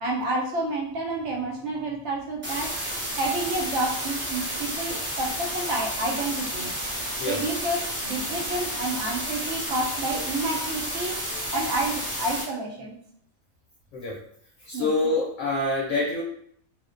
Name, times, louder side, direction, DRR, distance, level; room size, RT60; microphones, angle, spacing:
voice 1, 0.0-2.7 3.2-6.7 7.3-11.2 11.5-12.9 14.7-14.9, right 2 dB, 65° right, 0 dB, 0.8 m, -29 dB
sound 1, 2.4-12.4, equal, 15° right, 0.4 m, -31 dB
voice 2, 11.3-11.7 13.9-14.2 14.6-16.2, left 2 dB, 70° left, -4 dB, 0.8 m, -26 dB
2.4 x 2.1 x 2.4 m, 0.66 s
omnidirectional pair, 1.4 m